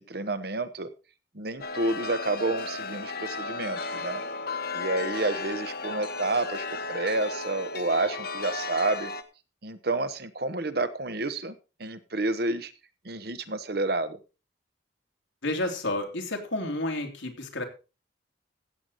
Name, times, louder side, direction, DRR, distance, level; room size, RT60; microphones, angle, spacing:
voice 1, 0.1-0.9 1.3-4.2 4.7-9.1 9.6-11.5 11.8-12.7 13.0-14.2, right 2 dB, 55° right, 11 dB, 1.1 m, -29 dB
Chime, 1.6-9.2, left 3 dB, 55° left, 1.1 m, -34 dB
voice 2, 15.4-17.6, left 1 dB, 85° left, 3 dB, 2.9 m, -30 dB
15.5 x 8.0 x 4.1 m, 0.31 s
head